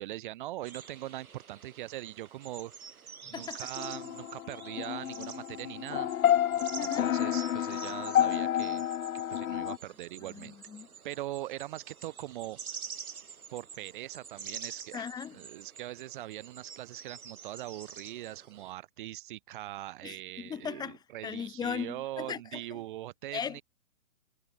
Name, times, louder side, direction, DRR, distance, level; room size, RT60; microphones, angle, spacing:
voice 1, 0.0-2.7 3.3-6.1 6.8-8.9 9.3-10.6 11.0-12.6 13.5-23.6, right 15 dB, 35° right, 7.6 m, -41 dB
sound 1, 0.6-18.7, right 6 dB, 80° right, 4.9 m, -47 dB
voice 2, 3.3-3.7 6.8-7.2 10.3-10.9 14.9-15.4 20.0-21.0 21.2-22.6 23.3-23.6, left 7 dB, 10° left, 3.9 m, -38 dB
sound 2, 3.8-9.8, left 11 dB, 70° left, 0.7 m, -30 dB
hypercardioid pair, 160°, 43 cm